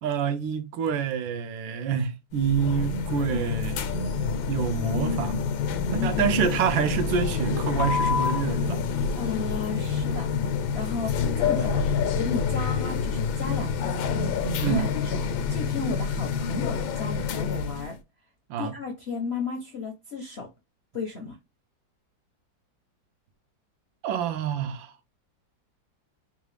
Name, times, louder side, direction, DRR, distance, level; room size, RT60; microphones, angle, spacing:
voice 1, 0.0-3.9 4.5-5.5 5.9-8.9 11.6-11.8 14.6-14.9 18.5-18.7 24.0-24.9, right 7 dB, 80° right, 1.4 m, -27 dB
sound 1, 2.3-17.9, left 6 dB, 85° left, 1.4 m, -27 dB
voice 2, 9.2-10.3 10.7-18.0 18.6-20.5 20.9-21.4, left 3 dB, 55° left, 0.7 m, -34 dB
3.7 x 2.4 x 3.2 m
omnidirectional pair, 2.1 m